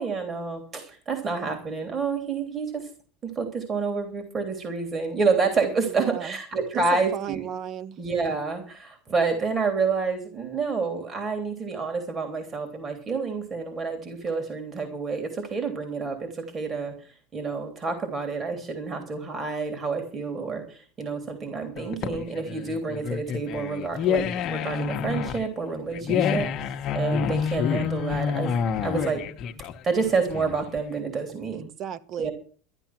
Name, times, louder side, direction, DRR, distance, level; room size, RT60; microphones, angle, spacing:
voice 1, 0.0-2.9 3.2-7.4 8.0-16.9 17.3-28.5 28.8-29.2 29.8-31.7 32.2-32.3, right 4 dB, 30° right, 5 dB, 3.3 m, -28 dB
voice 2, 5.9-6.3 6.7-7.9 31.5-32.3, right 9 dB, 45° right, 13 dB, 1.3 m, -35 dB
sound 1, 21.8-30.8, left 7 dB, 45° left, 1.3 m, -28 dB
13.0 x 11.0 x 6.1 m, 0.41 s
supercardioid pair, 115°, 0 cm